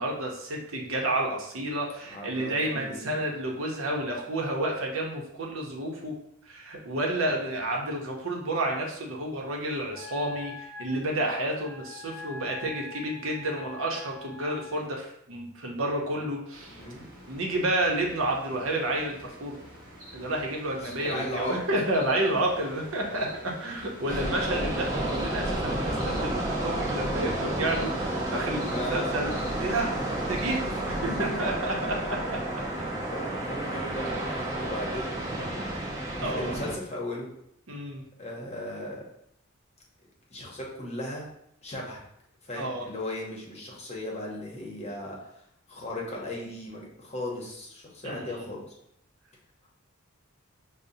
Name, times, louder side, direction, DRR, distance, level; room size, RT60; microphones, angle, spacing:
voice 1, 0.0-6.1 6.5-16.8 17.3-19.6 20.1-23.3 23.6-29.3 29.6-29.9 30.2-30.6 30.9-32.2 36.2-36.6 37.7-38.0 42.5-42.8 48.0-48.4, right 1 dB, 70° right, 0 dB, 0.7 m, -30 dB
voice 2, 2.1-3.2 16.7-17.1 20.8-21.6 23.0-23.3 24.1-24.3 28.7-29.2 31.0-31.4 33.1-35.6 36.2-37.3 38.2-39.1 40.3-41.3 41.6-42.0 42.4-45.3 45.7-48.7, left 1 dB, 30° left, -2 dB, 0.8 m, -37 dB
Wind instrument woodwind instrument, 9.9-14.8, left 5 dB, 75° left, 0.6 m, -45 dB
sound 1, 16.5-31.0, equal, 40° right, 1.4 m, -46 dB
sound 2, 24.1-36.7, right 1 dB, 15° right, 0.6 m, -31 dB
5.2 x 2.1 x 2.7 m, 0.73 s
head